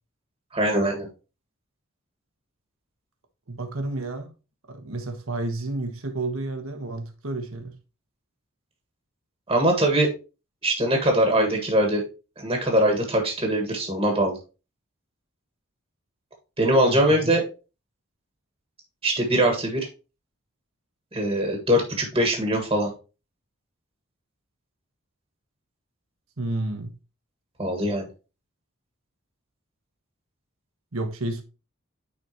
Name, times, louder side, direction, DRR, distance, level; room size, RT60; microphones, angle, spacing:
voice 1, 0.5-1.1 9.5-10.1 10.6-12.0 12.4-14.4 16.6-17.4 19.0-19.9 21.1-22.9 27.6-28.1, right 1 dB, 25° right, 1.5 m, -22 dB
voice 2, 3.5-4.3 4.7-7.7 16.8-17.4 26.4-26.9 30.9-31.4, right 2 dB, 80° right, 1.3 m, -31 dB
9.8 x 4.1 x 2.9 m
head